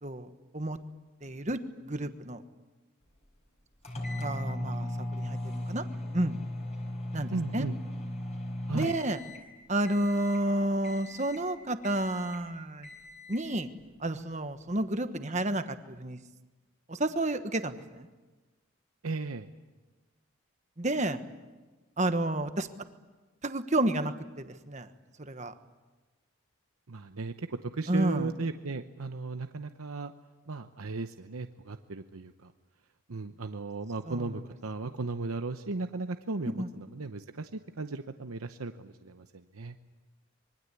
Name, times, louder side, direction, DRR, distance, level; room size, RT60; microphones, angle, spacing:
voice 1, 0.0-0.8 1.2-2.4 4.2-5.8 6.1-6.4 7.1-7.7 8.7-9.2 9.7-12.9 13.3-13.7 14.0-16.2 16.9-18.1 20.8-21.2 22.0-22.7 23.4-24.9 25.2-25.5 27.9-28.3 34.1-34.4 34.8-34.9 36.6-36.7, right 1 dB, 35° right, 9 dB, 1.3 m, -31 dB
sound 1, 3.8-9.5 9.8-10.4 10.8-11.5 11.8-12.4 12.8-13.5, left 1 dB, 30° left, 4.9 m, -37 dB
voice 2, 7.3-7.7 8.7-8.9 19.0-19.5 26.9-30.1 30.5-32.5 33.1-37.5 37.8-39.7, right 3 dB, 80° right, 8 dB, 0.9 m, -36 dB
26.0 x 23.0 x 8.4 m, 1.2 s
head